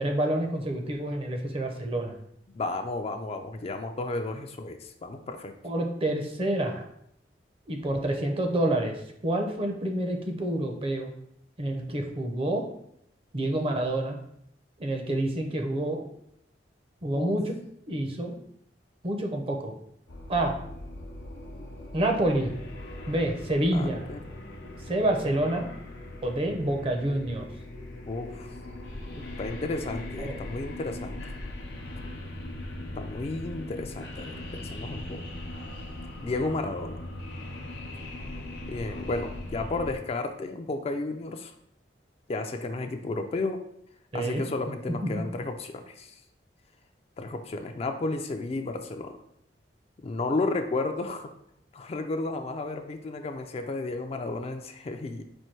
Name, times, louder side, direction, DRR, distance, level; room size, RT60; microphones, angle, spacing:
voice 1, 0.0-2.1 5.6-6.9 7.7-8.9 9.2-11.1 11.6-12.6 13.3-14.2 14.8-16.0 17.0-17.6 17.9-18.3 19.0-19.7 20.3-20.5 21.9-22.5 23.1-24.1 24.9-25.6 26.2-27.4 30.2-30.4 44.1-44.4 45.0-45.2, right 1 dB, 30° right, 3 dB, 0.6 m, -28 dB
voice 2, 2.5-5.5 17.1-17.3 23.7-24.2 28.1-28.6 29.2-31.2 33.0-35.2 36.2-37.0 38.7-41.5 42.3-43.6 44.1-46.1 47.2-49.2 50.0-51.3 51.7-55.2, left 2 dB, 35° left, 6 dB, 0.3 m, -33 dB
sound 1, 20.1-40.0, left 1 dB, 70° left, 0.8 m, -40 dB
4.4 x 2.6 x 4.5 m, 0.72 s
head